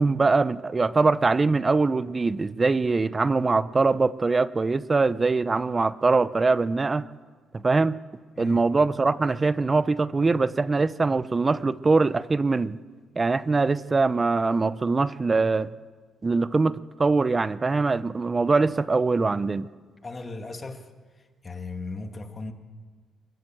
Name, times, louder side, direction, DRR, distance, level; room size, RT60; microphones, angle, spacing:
voice 1, 0.0-7.1 7.5-8.0 8.4-12.8 13.2-15.7 16.2-19.7, right 3 dB, 25° right, 0.7 m, -23 dB
voice 2, 8.3-8.7 20.0-20.8 21.4-22.5, left 3 dB, 30° left, 2.1 m, -36 dB
26.5 x 16.0 x 7.5 m
cardioid pair, 90°, 0 cm